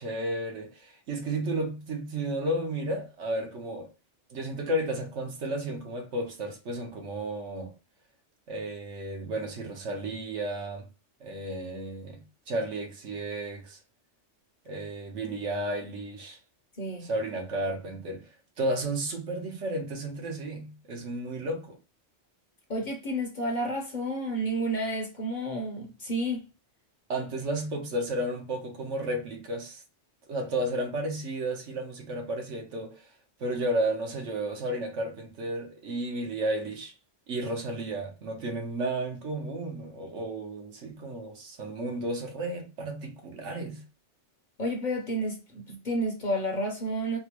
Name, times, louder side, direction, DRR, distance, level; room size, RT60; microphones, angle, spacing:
voice 1, 0.0-3.9 4.3-7.7 8.5-10.9 11.2-13.8 14.7-16.4 17.0-18.3 18.6-21.8 27.1-29.8 30.3-33.1 33.4-36.9 37.3-43.8, right 1 dB, 75° right, 1.3 m, -33 dB
voice 2, 16.8-17.1 22.7-26.4 44.6-47.2, right 1 dB, 45° left, 0.8 m, -30 dB
4.1 x 2.1 x 2.9 m
omnidirectional pair, 1.2 m